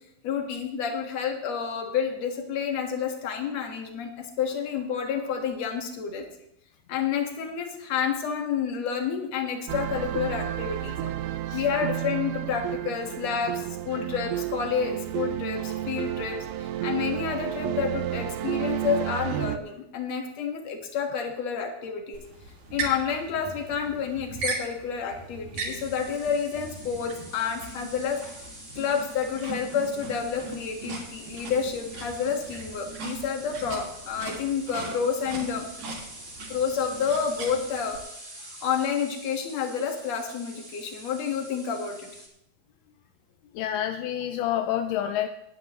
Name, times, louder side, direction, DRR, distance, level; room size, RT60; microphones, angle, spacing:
voice 1, 0.2-6.3 6.9-11.0 11.5-22.2 22.7-28.2 28.8-35.7 36.5-38.0 38.4-42.1, left 7 dB, 55° left, 3 dB, 2.5 m, -29 dB
sound 1, 9.7-19.6, right 12 dB, 80° right, 2.1 m, -31 dB
sound 2, 22.1-38.0, right 3 dB, 60° right, 3.7 m, -39 dB
sound 3, 25.5-42.3, right 1 dB, 5° right, 2.2 m, -46 dB
voice 2, 43.6-45.3, left 11 dB, 80° left, 7 dB, 2.1 m, -28 dB
20.0 x 9.8 x 3.0 m, 0.81 s
omnidirectional pair, 3.9 m